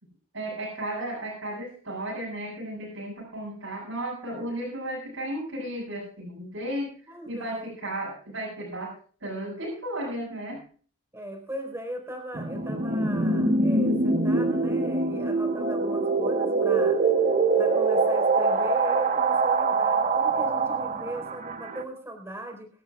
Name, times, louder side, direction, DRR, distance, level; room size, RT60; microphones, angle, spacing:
voice 1, 0.3-8.9 9.2-10.6, right 1 dB, 65° right, -5 dB, 7.4 m, -34 dB
voice 2, 7.1-7.7 11.1-17.0 17.6-22.7, right 1 dB, 10° right, 4 dB, 4.2 m, -38 dB
sound 1, 12.3-21.8, right 3 dB, 35° right, 1.2 m, -24 dB
24.0 x 13.0 x 2.4 m, 0.42 s
head